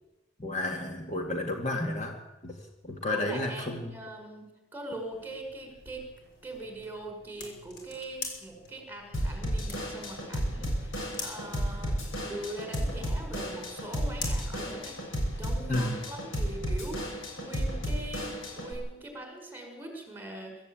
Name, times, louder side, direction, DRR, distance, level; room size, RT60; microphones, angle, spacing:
voice 1, 0.4-2.6 2.8-3.9 15.7-16.1, left 2 dB, 35° left, 2 dB, 2.1 m, -32 dB
voice 2, 3.0-6.0 6.4-15.0 15.4-20.7, right 1 dB, 10° right, 4 dB, 5.1 m, -42 dB
sound 1, 5.1-15.5, left 4 dB, 55° left, 6.2 m, -46 dB
Drum kit / Drum, 9.1-18.7, equal, 75° left, 7.2 m, -33 dB
24.0 x 14.0 x 8.9 m, 1.1 s
head